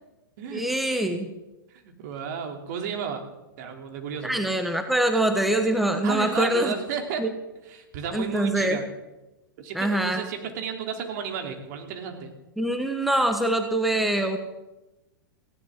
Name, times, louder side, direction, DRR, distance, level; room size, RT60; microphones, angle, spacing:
voice 1, 0.5-1.3 4.2-6.7 7.2-7.3 8.1-8.8 9.7-10.2 12.6-14.4, right 1 dB, ahead, 6 dB, 1.3 m, -24 dB
voice 2, 1.7-3.2 3.6-4.4 6.0-7.2 7.7-8.8 9.6-12.3, right 6 dB, 55° right, 4 dB, 2.9 m, -33 dB
19.0 x 16.5 x 3.7 m, 1.0 s
hypercardioid pair, 110°, 11 cm